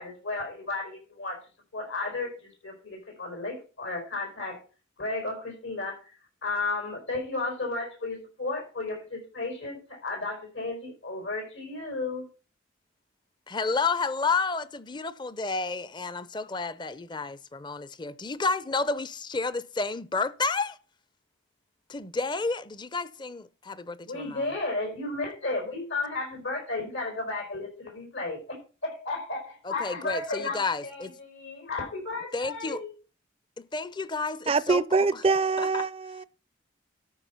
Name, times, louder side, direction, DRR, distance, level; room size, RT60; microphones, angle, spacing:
voice 1, 0.0-1.4 1.7-4.6 5.0-6.1 6.4-12.3 24.0-32.9, left 3 dB, 80° left, 4.9 m, -33 dB
voice 2, 13.5-20.8 21.9-24.5 29.6-31.1 32.3-32.8 33.6-34.8 35.1-35.2 35.6-35.9, left 4 dB, 25° left, 0.5 m, -31 dB
voice 3, 34.5-36.2, right 4 dB, 30° right, 0.4 m, -24 dB
13.0 x 5.6 x 5.6 m
head